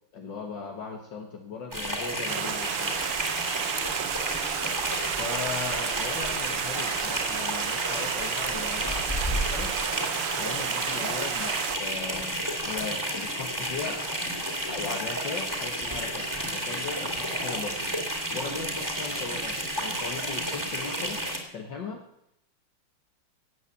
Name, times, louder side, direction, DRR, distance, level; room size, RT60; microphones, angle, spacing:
voice 1, 0.1-3.0 5.2-9.0 9.3-9.7 10.4-14.0 14.7-17.8 18.3-21.2 21.5-22.0, left 5 dB, 60° left, 2 dB, 2.1 m, -38 dB
sound 1, 1.7-21.4, right 1 dB, 10° right, 2.6 m, -31 dB
Stream, 2.3-11.8, right 12 dB, 90° right, 1.7 m, -32 dB
15.5 x 8.6 x 8.3 m, 0.77 s
omnidirectional pair, 2.4 m